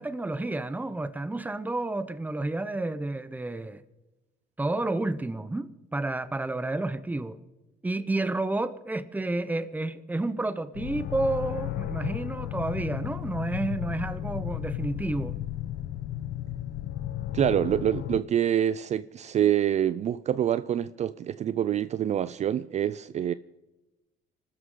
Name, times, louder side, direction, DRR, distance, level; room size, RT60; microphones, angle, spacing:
voice 1, 0.0-3.8 4.6-7.4 7.8-15.3, right 2 dB, 10° right, 0.8 m, -30 dB
sound 1, 10.7-18.2, left 13 dB, 75° left, 0.7 m, -34 dB
voice 2, 17.3-23.3, right 10 dB, 45° right, 0.4 m, -26 dB
26.0 x 13.0 x 3.9 m
cardioid pair, 110°, 17 cm